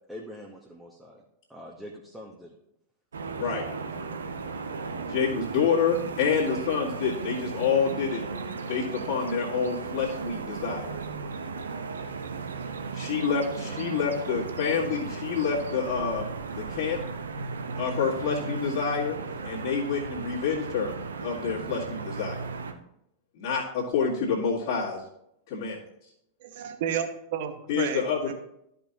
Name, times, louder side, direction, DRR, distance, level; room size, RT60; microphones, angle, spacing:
voice 1, 0.1-1.2 1.5-2.6 13.6-13.8 14.1-14.2, equal, 5° right, -2 dB, 1.1 m, -44 dB
sound 1, 3.1-22.7, right 4 dB, 70° right, 0.7 m, -36 dB
voice 2, 5.1-8.2 8.7-10.9 12.9-16.2 16.6-17.0 17.8-20.9 21.2-22.4 23.3-25.0 25.5-25.8 27.7-28.3, left 6 dB, 50° left, -8 dB, 2.1 m, -28 dB
voice 3, 26.4-28.3, right 8 dB, 50° right, 6 dB, 1.0 m, -32 dB
13.5 x 5.3 x 2.9 m, 0.78 s
figure-of-eight pair, 90°, 0 cm